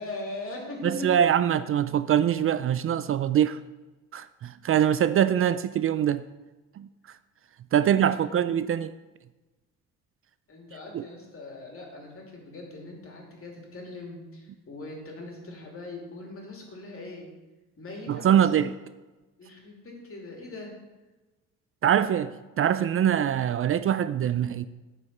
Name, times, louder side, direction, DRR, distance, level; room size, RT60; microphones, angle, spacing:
voice 1, 0.0-1.1 7.8-8.3 10.5-17.3 17.8-18.7 19.4-20.7, left 2 dB, 45° left, 2.8 m, -40 dB
voice 2, 0.8-3.6 4.1-6.2 6.8-6.9 7.7-8.9 10.9-11.0 18.1-18.7 21.8-24.7, right 9 dB, 45° right, 0.4 m, -23 dB
9.6 x 5.0 x 5.9 m
cardioid pair, 90°, 30 cm